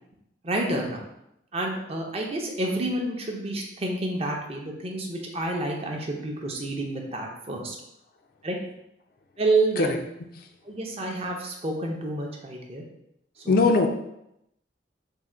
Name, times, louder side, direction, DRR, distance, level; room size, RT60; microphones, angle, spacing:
voice 1, 0.4-1.0 1.5-7.8 8.4-8.6 9.4-10.0 10.6-12.8 13.4-13.6, right 2 dB, 30° right, 1 dB, 0.5 m, -29 dB
voice 2, 13.5-13.9, left 3 dB, 50° left, 5 dB, 0.3 m, -20 dB
3.6 x 2.1 x 4.2 m, 0.82 s
head